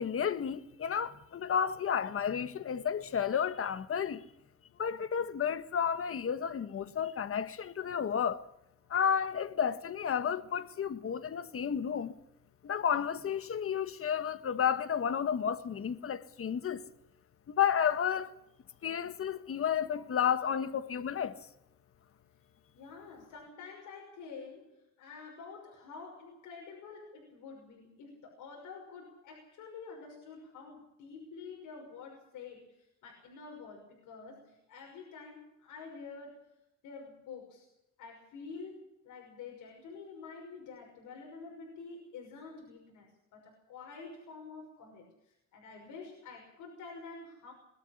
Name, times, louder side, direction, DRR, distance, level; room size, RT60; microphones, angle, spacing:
voice 1, 0.0-4.2 4.8-8.4 8.9-12.1 12.6-16.8 17.5-18.3 18.8-21.3, left 8 dB, 45° left, 1.5 m, -32 dB
voice 2, 22.7-36.5 36.8-37.7 38.0-47.5, left 4 dB, 90° left, 6.0 m, -48 dB
21.5 x 13.0 x 9.9 m
cardioid pair, 90°, 30 cm